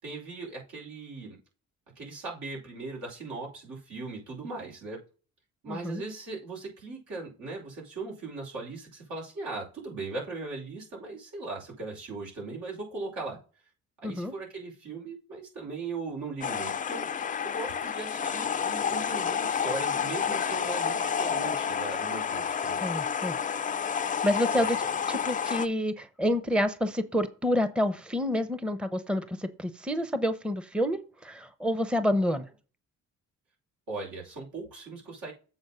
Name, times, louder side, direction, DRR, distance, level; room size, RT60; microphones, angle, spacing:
voice 1, 0.0-1.4 2.0-5.0 5.6-13.4 14.0-17.1 17.4-22.8 24.5-24.8 33.9-35.3, right 3 dB, 75° right, 5.3 m, -39 dB
voice 2, 5.7-6.0 14.0-14.3 22.8-23.4 24.0-24.8 25.1-32.5, left 1 dB, 5° right, 0.7 m, -28 dB
sound 1, 16.4-25.7, left 7 dB, 25° left, 0.4 m, -30 dB
7.9 x 4.4 x 5.5 m
cardioid pair, 90°, 30 cm